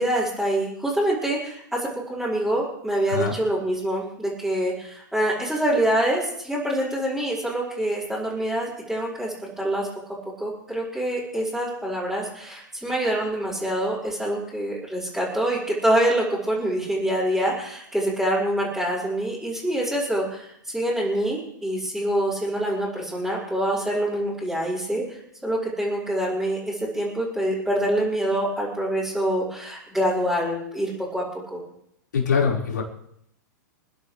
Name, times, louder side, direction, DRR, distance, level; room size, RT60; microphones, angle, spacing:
voice 1, 0.0-9.9 10.4-31.2 31.5-31.6, right 1 dB, ahead, -11 dB, 5.2 m, -25 dB
voice 2, 32.1-32.8, left 6 dB, 75° left, -3 dB, 5.0 m, -23 dB
29.0 x 10.5 x 3.4 m, 0.74 s
hypercardioid pair, 105°, 10 cm